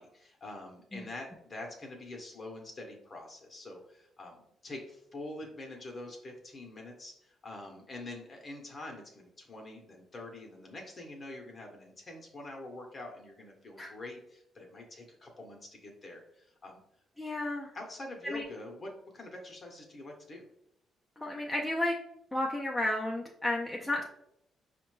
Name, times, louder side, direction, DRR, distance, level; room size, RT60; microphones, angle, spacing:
voice 1, 0.0-16.8 17.7-20.4, left 2 dB, 35° left, 1 dB, 0.8 m, -45 dB
voice 2, 17.2-17.7 18.2-18.4 21.2-21.9 22.3-24.0, left 1 dB, 10° left, -2 dB, 0.5 m, -32 dB
4.9 x 2.2 x 3.1 m, 0.76 s
cardioid pair, 90°, 0 cm